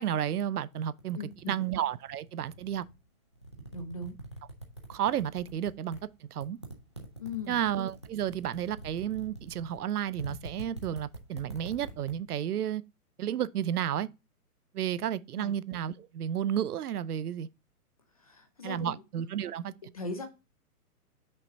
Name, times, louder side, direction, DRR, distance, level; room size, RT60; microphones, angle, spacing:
voice 1, 0.0-1.2 1.5-2.8 4.9-6.0 6.3-6.6 7.5-12.8 13.2-14.1 14.7-17.5 18.6-19.7, right 10 dB, 75° right, 0.6 m, -32 dB
sound 1, 0.7-3.0 3.3-6.0 6.3-12.1, right 2 dB, 20° right, 0.5 m, -44 dB
voice 2, 1.1-1.7 3.7-4.1 7.2-7.6 15.4-15.5 18.2-19.0 19.9-20.2, left 3 dB, 25° left, 0.6 m, -38 dB
6.0 x 5.4 x 4.1 m
hypercardioid pair, 170°, 46 cm